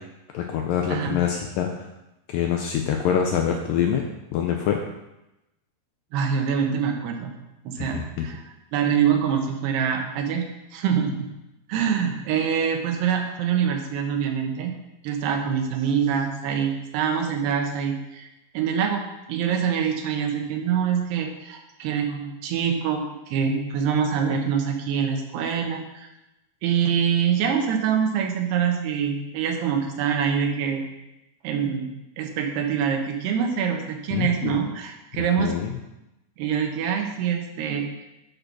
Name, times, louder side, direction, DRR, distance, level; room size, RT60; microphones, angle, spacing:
voice 1, 0.3-1.9 2.3-4.0 4.3-4.8 7.8-8.3 34.1-34.6 35.4-35.7, left 8 dB, 90° left, 3 dB, 2.0 m, -25 dB
voice 2, 6.1-7.3 7.6-8.4 8.7-10.4 10.7-11.3 11.7-14.8 15.0-18.3 18.5-26.1 26.6-30.8 31.4-35.6 36.4-37.9, right 7 dB, 90° right, 3 dB, 3.2 m, -25 dB
8.7 x 5.2 x 6.1 m, 0.95 s
omnidirectional pair, 4.6 m